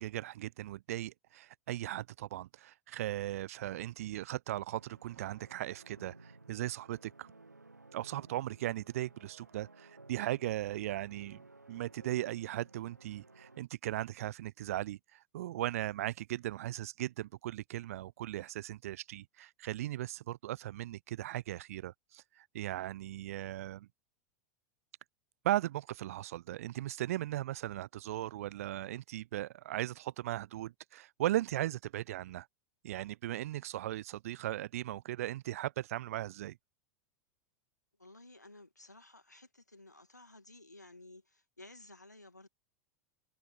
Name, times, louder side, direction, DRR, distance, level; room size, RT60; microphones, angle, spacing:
voice 1, 0.0-7.3 7.9-11.4 11.7-23.9 25.4-32.5 32.8-36.6, right 14 dB, 60° right, 0.3 m, -38 dB
sound 1, 4.7-13.6, right 3 dB, 85° right, 1.7 m, -57 dB
voice 2, 38.0-42.5, left 2 dB, 90° left, 2.2 m, -55 dB
figure-of-eight pair, 90°, 9 cm